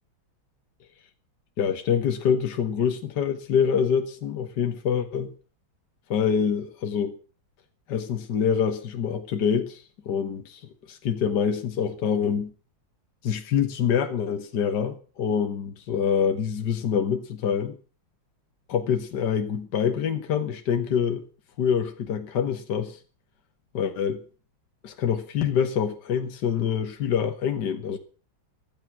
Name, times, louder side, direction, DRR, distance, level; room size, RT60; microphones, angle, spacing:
voice 1, 1.6-5.3 6.1-7.1 7.9-12.5 13.2-17.8 18.7-21.2 21.6-23.0 23.7-24.2 24.8-28.0, left 7 dB, 60° left, 1.8 m, -25 dB
15.5 x 13.0 x 6.0 m
omnidirectional pair, 2.1 m